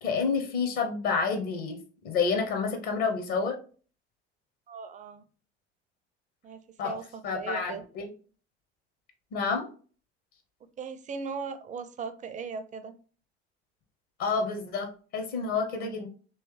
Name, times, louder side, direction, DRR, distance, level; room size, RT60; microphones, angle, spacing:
voice 1, 0.0-1.8 2.0-3.6 6.8-7.0 7.2-8.1 9.3-9.7 14.2-16.1, left 5 dB, 55° left, 5 dB, 0.9 m, -29 dB
voice 2, 4.7-5.3 6.4-7.8 10.8-13.0, right 5 dB, 20° right, 11 dB, 0.4 m, -38 dB
3.1 x 3.1 x 3.3 m, 0.39 s
figure-of-eight pair, 65°, 35 cm